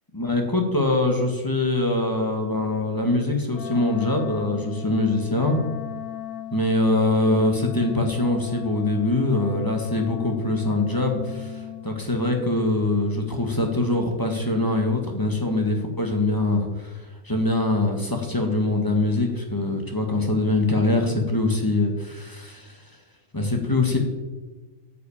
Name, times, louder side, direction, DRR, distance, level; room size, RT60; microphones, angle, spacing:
voice 1, 0.1-5.6 6.5-22.8 23.3-24.0, left 2 dB, 15° left, 2 dB, 1.6 m, -23 dB
Wind instrument woodwind instrument, 3.5-11.9, left 10 dB, 85° left, 1.4 m, -37 dB
11.5 x 5.9 x 8.6 m, 1.2 s
omnidirectional pair, 1.5 m